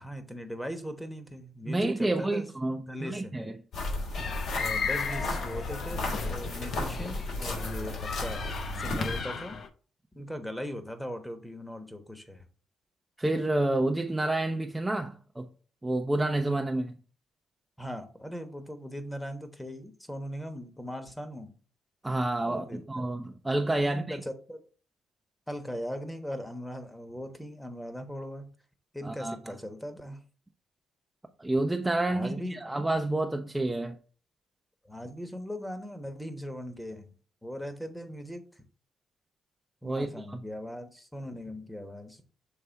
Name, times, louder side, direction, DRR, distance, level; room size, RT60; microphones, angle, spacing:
voice 1, 0.0-2.5 2.9-3.4 4.6-8.4 8.7-9.6 10.1-12.4 17.8-21.5 22.5-23.0 23.8-24.6 25.5-28.5 28.9-30.2 32.1-32.6 34.8-37.1 37.4-38.6 39.8-42.2, equal, 5° left, 1.1 m, -39 dB
voice 2, 1.7-3.5 13.2-15.5 15.8-16.9 22.0-24.2 29.0-29.4 31.4-34.0 39.8-40.4, right 2 dB, 15° right, 0.5 m, -29 dB
sound 1, 3.7-9.2, left 2 dB, 70° left, 3.2 m, -34 dB
sound 2, 4.2-9.7, left 5 dB, 55° left, 0.7 m, -36 dB
6.7 x 3.3 x 4.5 m
cardioid pair, 90°, 0 cm